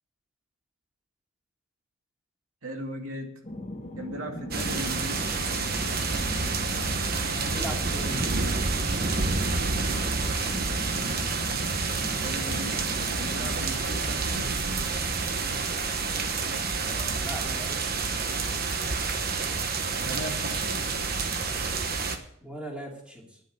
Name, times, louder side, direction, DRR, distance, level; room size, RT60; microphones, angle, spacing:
voice 1, 2.6-3.4 4.0-5.4 12.2-12.8 13.2-14.6 20.0-21.0, right 1 dB, 80° right, 3 dB, 2.4 m, -38 dB
sound 1, 3.4-13.5, left 1 dB, 30° left, 1.3 m, -40 dB
sound 2, 4.5-22.2, right 4 dB, 45° right, 1.2 m, -28 dB
voice 2, 7.3-8.8 16.8-18.8 22.4-23.4, equal, 5° right, -1 dB, 2.5 m, -40 dB
10.5 x 9.1 x 7.7 m, 0.69 s
head